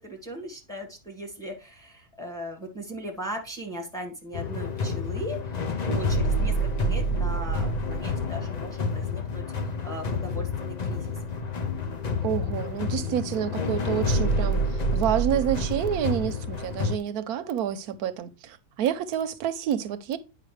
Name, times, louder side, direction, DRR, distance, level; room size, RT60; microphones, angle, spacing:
voice 1, 0.0-5.6 5.8-11.1, equal, ahead, 1.5 m, -38 dB
sound 1, 4.3-17.0, left 1 dB, 55° left, 0.4 m, -28 dB
voice 2, 12.2-20.2, right 9 dB, 75° right, 1.1 m, -28 dB
9.2 x 5.5 x 3.2 m
omnidirectional pair, 1.7 m